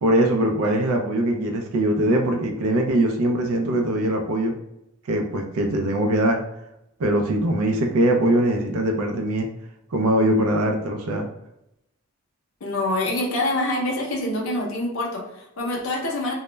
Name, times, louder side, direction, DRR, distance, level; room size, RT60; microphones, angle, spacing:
voice 1, 0.0-4.5 5.1-6.4 7.0-9.5 9.9-11.3, right 1 dB, 80° right, 3 dB, 0.4 m, -21 dB
voice 2, 12.6-16.3, left 1 dB, 70° left, -1 dB, 0.6 m, -26 dB
2.2 x 2.0 x 3.1 m, 0.83 s
head